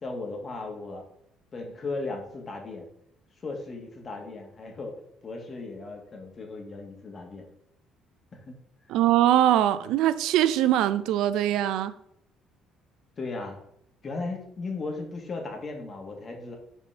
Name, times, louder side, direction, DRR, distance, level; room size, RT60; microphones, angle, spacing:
voice 1, 0.0-1.0 1.5-2.8 3.4-7.5 8.3-8.6 8.9-9.0 13.2-13.6 14.0-16.6, left 3 dB, 30° left, 1.6 m, -36 dB
voice 2, 8.9-11.9, right 12 dB, 80° right, 0.4 m, -22 dB
5.5 x 4.3 x 5.6 m
cardioid pair, 120°, 0 cm